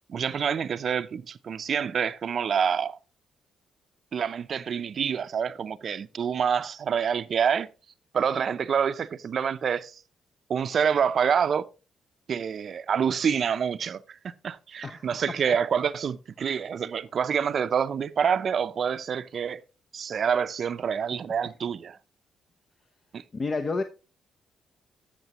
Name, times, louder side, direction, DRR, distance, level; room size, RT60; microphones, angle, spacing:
voice 1, 0.1-3.0 4.1-7.7 8.1-10.0 10.5-11.7 12.3-14.2 14.4-19.6 19.9-22.0 23.1-23.2, right 7 dB, 55° right, 0.6 m, -27 dB
voice 2, 14.8-15.6 23.3-23.8, left 3 dB, 40° left, 0.8 m, -31 dB
13.5 x 6.6 x 3.0 m
cardioid pair, 75°, 0 cm